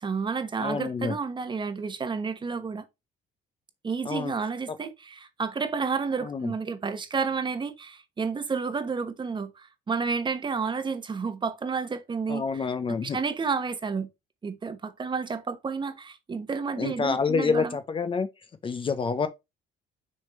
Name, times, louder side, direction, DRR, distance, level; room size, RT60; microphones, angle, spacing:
voice 1, 0.0-2.8 3.8-12.4 12.9-14.1 14.4-17.8, right 5 dB, 30° right, 1.1 m, -31 dB
voice 2, 0.6-1.1 4.0-4.3 6.2-6.5 12.3-13.2 16.8-18.3 18.6-19.3, left 5 dB, 30° left, 0.7 m, -27 dB
6.4 x 3.6 x 4.3 m
cardioid pair, 110°, 17 cm